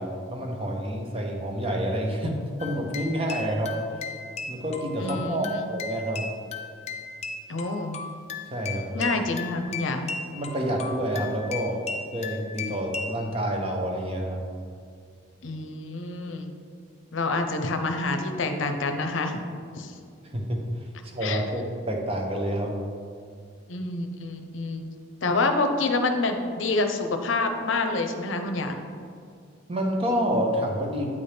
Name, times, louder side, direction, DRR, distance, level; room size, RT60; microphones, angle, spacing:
voice 1, 0.0-2.3 2.6-3.7 4.5-6.2 8.5-9.1 10.3-11.8 12.1-14.5 20.2-20.6 21.0-22.7 29.7-31.1, equal, 30° right, 1 dB, 0.8 m, -28 dB
sound 1, 2.6-13.2, left 4 dB, 35° left, 0.4 m, -37 dB
voice 2, 5.0-5.7 7.5-8.0 8.9-10.1 15.4-16.5 17.1-19.4 19.8-19.9 21.2-21.4 23.7-24.9 25.2-28.8, left 3 dB, 75° left, 6 dB, 0.6 m, -27 dB
8.5 x 4.2 x 3.4 m, 2.3 s
head